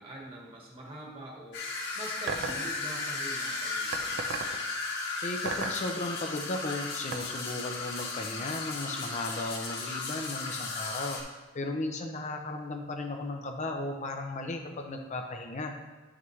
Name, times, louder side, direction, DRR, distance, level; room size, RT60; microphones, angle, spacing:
voice 1, 0.0-1.6 1.9-4.6, right 1 dB, 30° right, -2 dB, 1.5 m, -44 dB
sound 1, 1.5-11.2, left 3 dB, 60° left, 1.6 m, -35 dB
sound 2, 2.3-2.6 3.9-4.6 5.5-5.8 7.1-7.2, right 5 dB, 60° right, 0.5 m, -33 dB
voice 2, 5.2-11.2 11.5-15.7, left 2 dB, 35° left, 3 dB, 0.6 m, -35 dB
9.1 x 5.9 x 3.2 m, 1.4 s
head